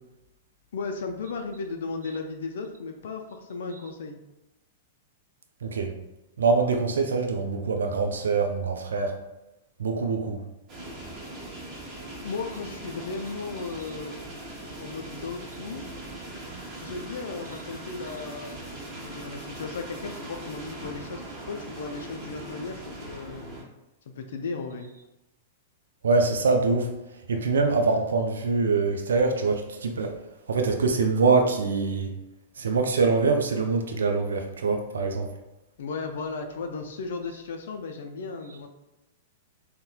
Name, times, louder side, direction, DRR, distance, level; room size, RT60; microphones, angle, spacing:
voice 1, 0.7-4.2 12.2-14.3 14.8-15.8 16.8-23.5 24.1-24.9 35.8-38.7, left 4 dB, 65° left, 4 dB, 0.3 m, -35 dB
voice 2, 5.6-5.9 6.4-9.1 9.8-10.4 26.0-26.9 27.3-30.1 30.5-32.1 32.6-35.3, right 4 dB, 70° right, 4 dB, 0.4 m, -24 dB
sound 1, 10.7-23.6, right 1 dB, 35° right, 1.1 m, -40 dB
4.1 x 2.1 x 2.3 m, 0.98 s
figure-of-eight pair, 100°, 0 cm